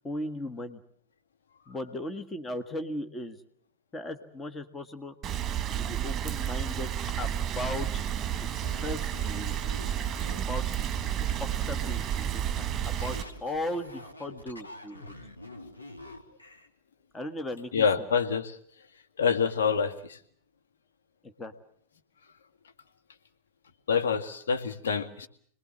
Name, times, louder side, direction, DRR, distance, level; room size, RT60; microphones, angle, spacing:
voice 1, 0.0-0.8 1.7-3.4 3.9-5.1 5.8-6.9 7.2-8.1 8.4-9.9 10.5-10.6 11.2-15.1 17.1-18.1 21.2-21.5, left 1 dB, 15° left, 7 dB, 1.7 m, -37 dB
Rain, 5.2-13.2, right 10 dB, 25° right, 1.8 m, -31 dB
sound 1, 8.6-16.7, left 1 dB, 85° left, 3.0 m, -47 dB
voice 2, 17.7-18.6 19.2-20.2 23.9-25.3, left 6 dB, 65° left, 5 dB, 2.1 m, -26 dB
27.0 x 21.0 x 7.4 m, 0.63 s
figure-of-eight pair, 90°, 0 cm